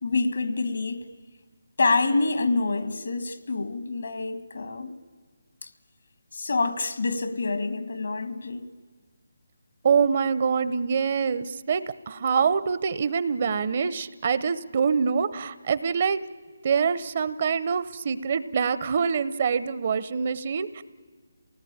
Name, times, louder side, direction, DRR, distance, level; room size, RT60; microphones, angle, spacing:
voice 1, 0.0-1.0 1.8-5.0 5.6-5.7 6.3-8.7, left 3 dB, 70° left, 10 dB, 1.8 m, -27 dB
voice 2, 9.8-16.2 16.6-20.8, right 6 dB, 40° right, 15 dB, 0.8 m, -25 dB
28.0 x 18.5 x 8.8 m, 1.5 s
figure-of-eight pair, 160°, 0 cm